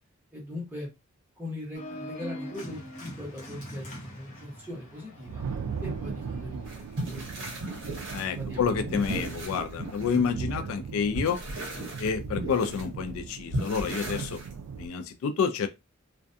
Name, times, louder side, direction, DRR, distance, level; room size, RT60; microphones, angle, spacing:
voice 1, 0.3-0.9 1.4-5.5 5.8-9.1, left 1 dB, 10° right, 0.9 m, -41 dB
Organ, 1.7-7.4, equal, 35° left, 0.8 m, -43 dB
Thunder, 4.7-14.9, right 5 dB, 85° right, 0.3 m, -38 dB
sound 1, 6.7-10.8 11.1-12.8 13.5-14.9, right 1 dB, 55° right, 0.8 m, -36 dB
voice 2, 8.1-11.4 12.0-14.4 14.8-15.7, left 6 dB, 70° left, 0.3 m, -29 dB
2.3 x 2.2 x 2.6 m
head